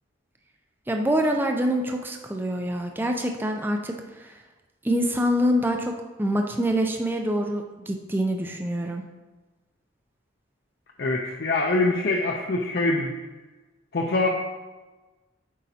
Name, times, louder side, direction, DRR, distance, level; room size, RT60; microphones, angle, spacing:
voice 1, 0.9-4.4 4.8-5.9 6.2-9.0, equal, 10° right, 3 dB, 0.3 m, -25 dB
voice 2, 11.0-13.1 13.9-14.3, left 2 dB, 55° left, 0 dB, 0.6 m, -24 dB
8.4 x 5.0 x 2.8 m, 1.2 s
head